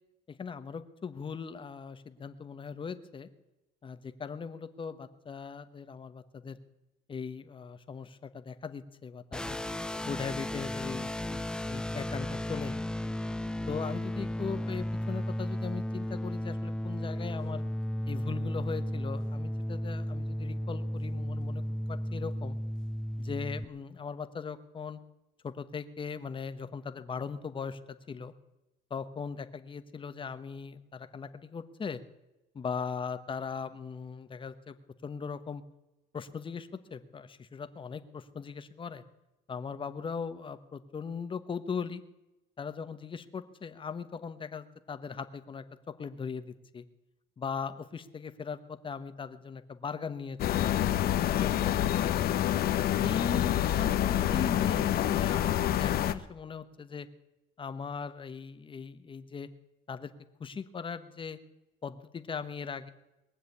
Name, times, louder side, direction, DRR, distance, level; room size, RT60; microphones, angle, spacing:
voice 1, 0.3-3.3 3.8-6.6 7.1-9.6 10.1-13.1 13.7-17.6 18.1-22.6 23.2-25.0 25.4-28.3 28.9-32.0 32.5-34.8 35.0-35.6 36.1-39.0 39.5-42.0 42.6-46.8 47.4-52.1 52.7-57.1 57.6-59.5 59.9-60.1 60.4-61.4 61.8-62.9, left 6 dB, 30° left, 10 dB, 1.1 m, -39 dB
sound 1, 9.3-23.7, left 1 dB, 5° left, 0.5 m, -34 dB
sound 2, 50.4-56.1, left 12 dB, 65° left, 0.9 m, -27 dB
21.0 x 7.5 x 8.5 m, 1.0 s
cardioid pair, 110°, 17 cm